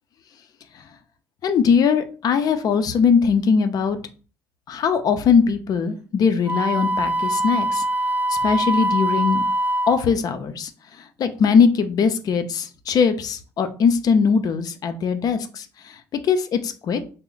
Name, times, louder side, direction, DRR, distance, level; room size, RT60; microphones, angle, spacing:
voice 1, 1.4-4.0 4.7-7.9 8.3-9.4 9.9-10.7 11.0-17.1, left 6 dB, 55° left, 10 dB, 0.6 m, -20 dB
Wind instrument woodwind instrument, 6.5-10.0, right 1 dB, 20° right, 0.4 m, -23 dB
3.1 x 2.1 x 3.8 m, 0.37 s
supercardioid pair, 65°, 8 cm